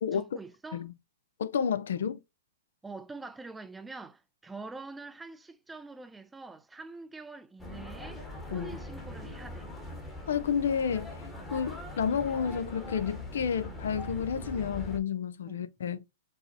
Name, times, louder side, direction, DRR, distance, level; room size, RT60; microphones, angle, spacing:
voice 1, 0.1-0.9 2.8-8.2 8.5-9.7 15.5-15.6, right 3 dB, 10° right, 0.3 m, -45 dB
voice 2, 1.4-2.2 8.5-8.8 10.3-11.1 11.5-16.0, left 7 dB, 75° left, 0.4 m, -30 dB
sound 1, 7.6-15.0, left 1 dB, 10° left, 1.0 m, -41 dB
4.6 x 2.0 x 2.8 m
hypercardioid pair, 130°, 0 cm